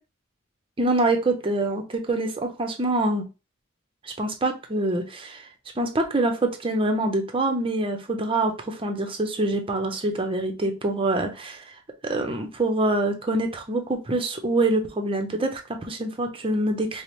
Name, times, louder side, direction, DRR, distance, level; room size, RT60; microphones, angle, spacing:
voice 1, 0.8-3.2 4.0-5.4 5.8-11.6 12.0-17.0, right 2 dB, 25° right, 4 dB, 0.6 m, -25 dB
4.8 x 2.0 x 2.9 m, 0.29 s
head